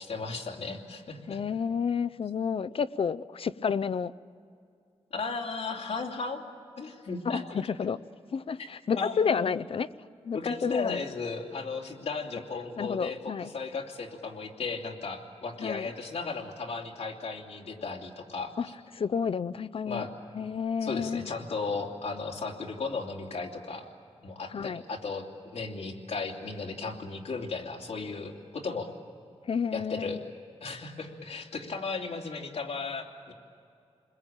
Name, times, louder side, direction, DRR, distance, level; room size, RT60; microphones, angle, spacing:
voice 1, 0.0-1.4 5.1-6.4 6.8-7.6 8.9-9.5 10.3-18.7 19.8-20.1 20.8-23.9 24.2-25.2 25.5-28.9 29.7-30.2 30.6-33.3, left 4 dB, 75° left, 1 dB, 2.9 m, -35 dB
voice 2, 1.3-4.1 7.2-8.0 8.3-9.9 10.2-11.0 12.8-13.5 15.6-15.9 18.6-18.7 18.9-20.1 20.3-21.3 24.5-24.8 29.5-30.3, left 6 dB, 60° left, 15 dB, 0.6 m, -30 dB
29.5 x 21.5 x 8.9 m, 2.5 s
wide cardioid pair, 130°, 11 cm